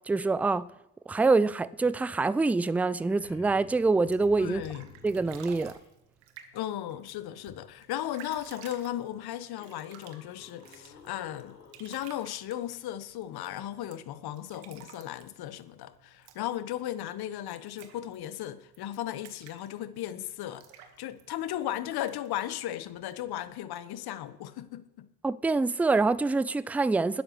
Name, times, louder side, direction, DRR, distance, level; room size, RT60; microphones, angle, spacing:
voice 1, 0.1-0.7 1.1-4.6 5.0-5.7 25.2-27.2, right 3 dB, 5° right, 0.4 m, -25 dB
sound 1, 2.8-5.9 8.4-8.5 9.1-12.2 14.8-14.9, left 3 dB, 80° left, 2.3 m, -54 dB
sound 2, 4.0-23.5, right 9 dB, 65° right, 2.1 m, -54 dB
voice 2, 4.4-4.9 6.5-25.1, left 12 dB, 50° left, 1.3 m, -36 dB
20.5 x 12.5 x 3.2 m
figure-of-eight pair, 55°, 48 cm